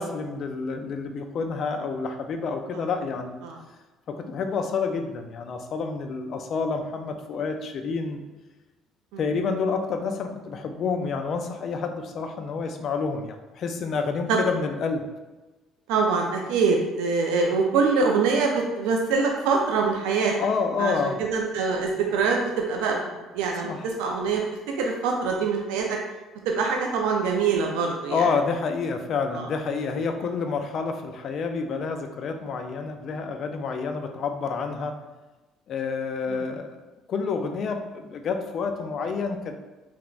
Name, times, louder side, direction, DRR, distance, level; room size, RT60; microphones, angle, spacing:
voice 1, 0.0-3.4 4.1-8.2 9.2-15.1 20.3-21.2 23.6-23.8 27.6-27.7 28.1-35.0 35.7-36.8 37.1-39.6, left 5 dB, 55° left, 6 dB, 0.3 m, -28 dB
voice 2, 15.9-20.3 20.8-23.0 23.3-24.4 24.8-26.0 26.5-28.3 29.3-29.5 36.3-36.4, right 4 dB, 85° right, 0 dB, 0.3 m, -24 dB
3.1 x 2.0 x 2.3 m, 1.1 s
supercardioid pair, 90°, 0 cm